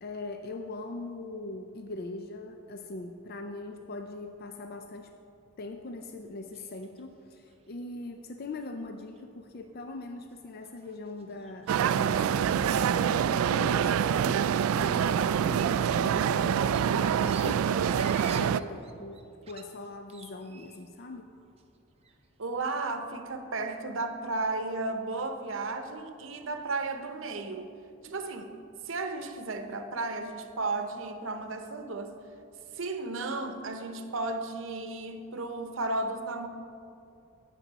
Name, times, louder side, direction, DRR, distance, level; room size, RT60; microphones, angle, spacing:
voice 1, 0.0-5.1 5.6-21.3, left 2 dB, 45° left, 6 dB, 0.4 m, -41 dB
sound 1, 6.5-7.0 7.3-7.9 8.6-8.7 9.0-9.2 9.7-9.8 10.3-10.4 10.6-11.9 12.8-14.2 14.5-14.8 15.1-21.0 21.3-22.3, right 5 dB, 30° right, 0.6 m, -50 dB
sound 2, 11.7-18.6, right 8 dB, 85° right, 0.3 m, -26 dB
voice 2, 22.4-27.7 28.0-28.5 28.9-32.1 32.7-36.5, right 3 dB, 65° right, 7 dB, 0.8 m, -34 dB
12.5 x 8.7 x 4.0 m, 2.6 s
head